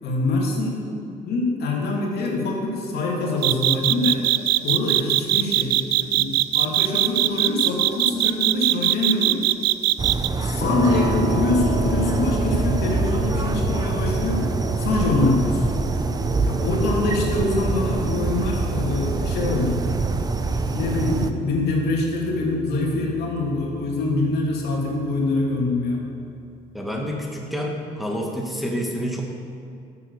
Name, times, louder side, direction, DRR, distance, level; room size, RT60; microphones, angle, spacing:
voice 1, 0.0-4.2 4.6-6.3 6.5-9.4 10.4-14.4 14.8-15.6 16.5-19.8 20.7-26.0, left 2 dB, 75° left, -2 dB, 2.7 m, -24 dB
sound 1, 3.4-10.3, right 16 dB, 80° right, 0.4 m, -20 dB
sound 2, 10.0-21.3, right 3 dB, 20° right, 0.7 m, -25 dB
sound 3, 10.6-25.4, equal, 55° left, 2.9 m, -31 dB
voice 2, 26.7-29.2, equal, ahead, -1 dB, 1.6 m, -28 dB
12.5 x 7.6 x 6.6 m, 2.5 s
cardioid pair, 110°, 17 cm